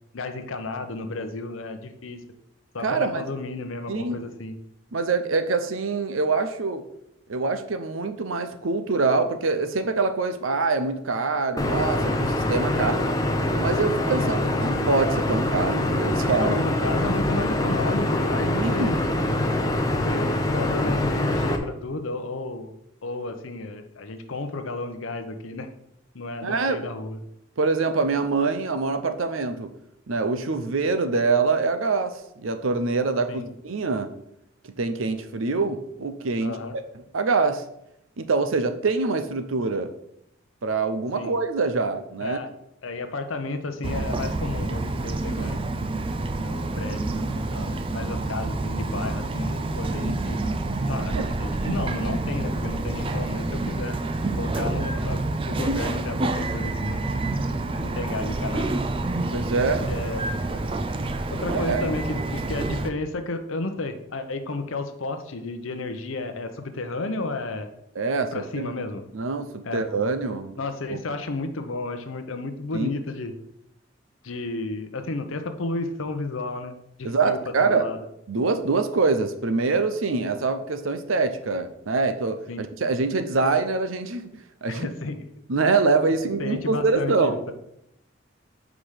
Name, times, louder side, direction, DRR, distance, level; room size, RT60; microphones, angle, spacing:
voice 1, 0.1-2.2 2.7-4.6 12.7-13.1 16.2-19.2 19.9-25.7 26.1-27.2 33.3-33.5 36.4-36.7 41.1-41.3 42.2-42.5 42.8-45.6 46.4-50.4 50.9-54.0 54.4-55.2 55.5-57.0 57.8-58.8 59.9-60.7 61.3-67.7 68.3-69.0 69.6-69.8 70.6-73.3 74.2-78.0 82.5-82.6 84.7-85.3 86.4-87.5, left 2 dB, 85° left, 8 dB, 0.8 m, -32 dB
voice 2, 2.8-3.3 3.9-4.2 4.9-6.8 7.3-12.9 13.6-16.6 18.5-18.9 26.4-26.8 27.6-29.7 30.1-34.1 34.8-36.6 37.1-37.6 38.2-39.9 40.6-42.4 50.0-50.2 51.0-51.3 59.3-59.9 61.5-61.9 68.0-68.7 69.1-70.5 70.9-71.0 72.7-72.9 77.0-77.8 78.3-84.9 85.5-87.4, right 4 dB, 85° right, 9 dB, 0.7 m, -25 dB
sound 1, 11.6-21.6, left 1 dB, 20° left, 0.6 m, -24 dB
Bird vocalization bird call bird song, 43.8-62.9, right 2 dB, 25° right, 0.4 m, -28 dB
5.0 x 4.8 x 5.7 m, 0.79 s
head